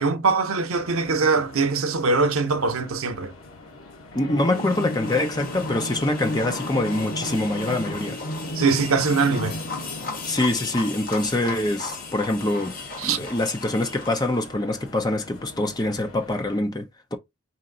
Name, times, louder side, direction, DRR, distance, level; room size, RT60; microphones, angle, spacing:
voice 1, 0.0-3.3 8.5-9.6 13.0-13.3, right 4 dB, 85° right, 0.7 m, -22 dB
sound 1, 0.7-16.6, left 1 dB, 80° left, 1.1 m, -37 dB
voice 2, 4.1-8.2 10.3-12.7 13.0-17.2, left 1 dB, 20° left, 0.6 m, -25 dB
sound 2, 4.4-14.5, left 4 dB, 40° left, 1.0 m, -36 dB
4.2 x 2.6 x 3.8 m
head